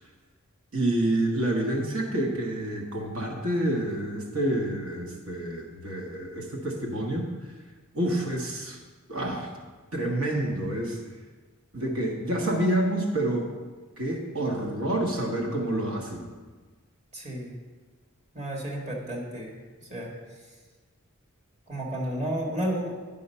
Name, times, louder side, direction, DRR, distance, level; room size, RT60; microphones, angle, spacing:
voice 1, 0.7-7.3 7.9-8.8 9.1-9.5 9.9-11.0 11.7-13.5 14.0-16.3, right 1 dB, 90° right, 0 dB, 1.3 m, -28 dB
voice 2, 17.1-17.5 18.3-19.5 19.8-20.1 21.7-22.9, right 1 dB, 35° right, -2 dB, 1.8 m, -32 dB
10.0 x 5.6 x 5.5 m, 1.4 s
head